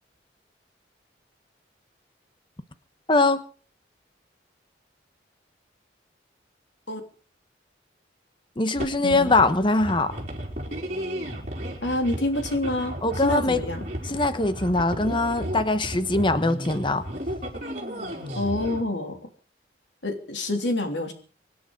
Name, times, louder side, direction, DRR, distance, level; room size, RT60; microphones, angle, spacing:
voice 1, 3.1-3.4 8.6-10.1 13.0-13.6 14.0-17.0, left 2 dB, 25° left, 11 dB, 1.1 m, -22 dB
sound 1, 8.7-18.8, equal, 40° right, 4.8 m, -34 dB
voice 2, 9.0-9.3 11.8-13.8 18.4-19.2 20.0-21.1, left 1 dB, 75° left, 5 dB, 3.2 m, -27 dB
25.0 x 10.0 x 5.3 m, 0.41 s
head